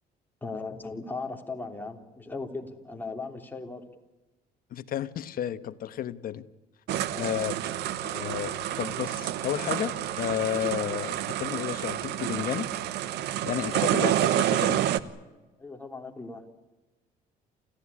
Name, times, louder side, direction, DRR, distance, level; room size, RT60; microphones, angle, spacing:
voice 1, 0.4-3.8 7.1-7.4 15.6-16.4, left 3 dB, 10° left, 2 dB, 3.4 m, -38 dB
voice 2, 4.7-6.4 7.2-7.6 8.0-12.7 13.4-14.8, left 10 dB, 60° left, 12 dB, 1.3 m, -32 dB
sound 1, 6.9-15.0, right 12 dB, 80° right, 1.1 m, -29 dB
29.0 x 15.0 x 9.9 m, 1.1 s
cardioid pair, 110°, 17 cm